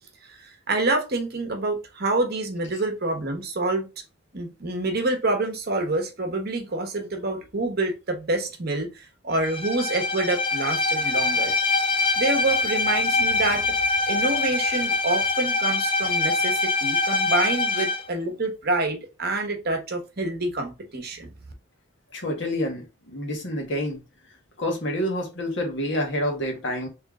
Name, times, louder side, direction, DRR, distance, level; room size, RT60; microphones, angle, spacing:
voice 1, 0.2-3.9 4.3-11.5 12.2-13.8 14.1-21.3, right 2 dB, 45° right, 1.0 m, -27 dB
Bowed string instrument, 9.4-18.1, left 3 dB, 25° left, 0.5 m, -24 dB
voice 2, 22.1-24.0 24.6-26.9, left 1 dB, 55° left, 1.4 m, -28 dB
3.5 x 3.2 x 3.6 m
head